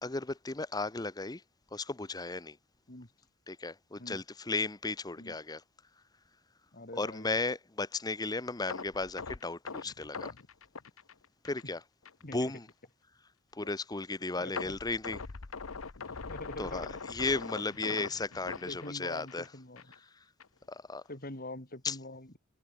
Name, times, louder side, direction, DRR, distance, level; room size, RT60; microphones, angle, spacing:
voice 1, 0.0-1.4 1.7-2.6 3.5-5.6 6.9-10.3 11.4-11.8 12.3-12.7 13.5-15.2 16.6-19.5 20.7-21.0 21.8-22.0, left 3 dB, 20° left, 0.8 m, -35 dB
voice 2, 6.7-7.4 12.2-12.5 14.4-14.7 16.3-16.9 17.9-18.0 18.7-19.8 21.1-22.4, left 2 dB, 45° left, 3.8 m, -44 dB
sound 1, 8.7-11.7 12.0-12.2 12.7-12.8 14.6-19.5 19.8-20.0 20.4-20.5, left 4 dB, 80° left, 1.1 m, -42 dB
head